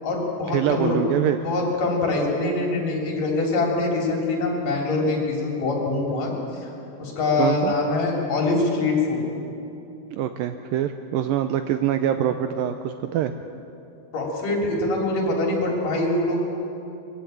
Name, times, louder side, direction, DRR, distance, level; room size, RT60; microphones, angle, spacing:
voice 1, 0.0-1.0 1.4-6.3 6.6-6.7 7.0-9.2 14.1-16.5, left 2 dB, 55° left, -1 dB, 4.8 m, -24 dB
voice 2, 0.5-1.4 7.4-7.7 10.1-13.3, right 11 dB, 80° right, 8 dB, 2.1 m, -24 dB
23.0 x 15.0 x 9.2 m, 2.8 s
omnidirectional pair, 4.6 m